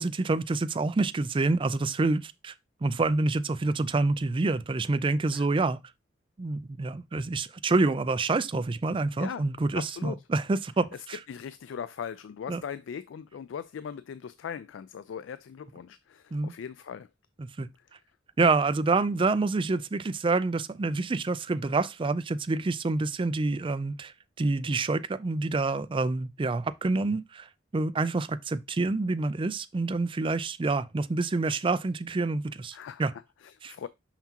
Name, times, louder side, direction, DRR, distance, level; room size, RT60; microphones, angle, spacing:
voice 1, 0.0-2.5 2.8-5.8 6.4-11.2 12.5-12.6 16.3-16.5 17.4-17.7 18.4-27.5 27.7-33.1 33.6-33.7, right 3 dB, 30° right, 0.4 m, -27 dB
voice 2, 9.7-10.2 10.9-17.1 17.8-17.9 32.7-33.9, left 7 dB, 85° left, 0.3 m, -40 dB
5.8 x 5.7 x 2.9 m
head